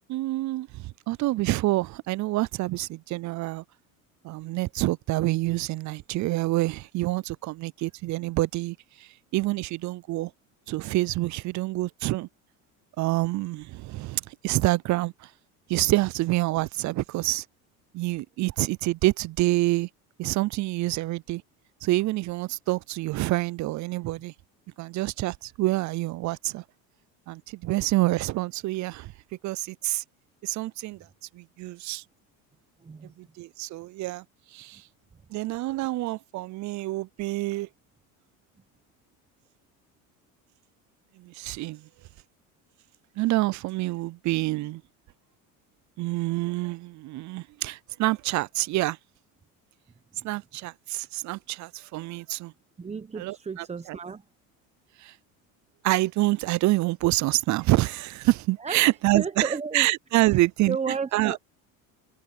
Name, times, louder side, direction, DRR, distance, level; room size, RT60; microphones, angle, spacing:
voice 1, 0.1-3.6 4.2-10.3 10.7-12.3 13.0-15.3 15.7-17.4 17.9-19.9 20.2-21.4 21.8-24.3 24.8-26.6 27.3-29.1 29.4-30.0 30.4-31.0 31.3-32.0 33.2-34.2 34.5-34.8 35.3-37.7 41.2-41.9 43.2-44.8 46.0-49.0 50.2-52.5 53.2-54.0 55.0-55.1 55.8-60.8 61.1-61.4, right 18 dB, 45° right, 0.5 m, -27 dB
voice 2, 32.8-33.1 50.2-50.3 52.8-54.2 58.6-58.9 59.1-59.9 60.2-60.4 60.7-61.5, right 5 dB, 15° right, 1.0 m, -33 dB
supercardioid pair, 100°, 41 cm